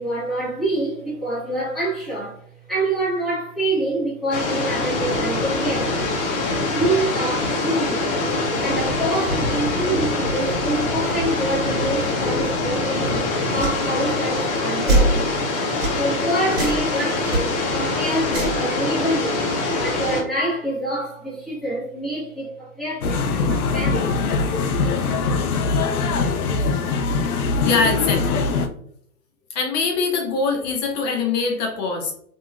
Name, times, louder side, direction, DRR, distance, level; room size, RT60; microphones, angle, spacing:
voice 1, 0.0-5.9 6.7-8.2 8.6-13.1 13.5-15.3 15.9-19.5 19.8-24.2, right 1 dB, ahead, 1.1 m, -26 dB
sound 1, 4.3-20.2, left 2 dB, 50° left, 0.9 m, -24 dB
sound 2, 13.6-13.8 14.9-15.2 15.8-16.0 16.5-16.8 17.3-17.4 18.3-18.6, right 2 dB, 30° right, 1.5 m, -20 dB
sound 3, 23.0-28.7, left 4 dB, 75° left, 0.6 m, -22 dB
voice 2, 27.6-28.5 29.5-32.1, left 4 dB, 30° left, 0.7 m, -23 dB
2.9 x 2.7 x 2.3 m
hypercardioid pair, 135°, 45 cm